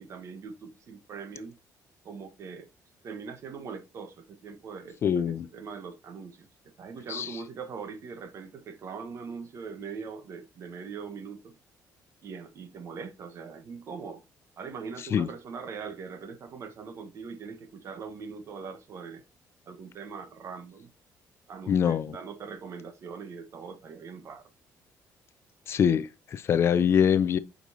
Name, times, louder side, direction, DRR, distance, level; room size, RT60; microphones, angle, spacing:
voice 1, 0.0-1.6 2.0-2.7 3.0-6.5 6.8-11.6 12.2-14.2 14.6-19.2 19.7-20.9 21.5-24.5, right 5 dB, 50° right, 1.2 m, -41 dB
voice 2, 5.0-5.5 7.1-7.3 15.1-15.3 21.7-22.2 25.7-27.4, left 8 dB, 40° left, 0.4 m, -24 dB
8.0 x 5.2 x 2.7 m
cardioid pair, 160°, 6 cm